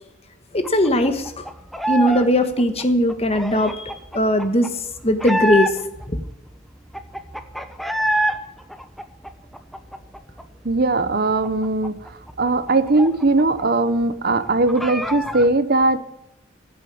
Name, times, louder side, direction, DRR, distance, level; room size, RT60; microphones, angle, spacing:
voice 1, 0.5-1.4 1.9-5.7 6.1-6.2, equal, 30° left, 8 dB, 1.5 m, -19 dB
sound 1, 0.6-2.3 2.5-6.1 6.5-6.6 6.7-8.4 8.7-10.4 10.7-10.9 11.2-13.6 13.9-14.0 14.3-15.5, equal, ahead, 0.9 m, -27 dB
voice 2, 10.6-12.0 12.4-16.0, right 2 dB, 50° right, 13 dB, 0.9 m, -19 dB
15.5 x 7.8 x 9.6 m, 0.85 s
head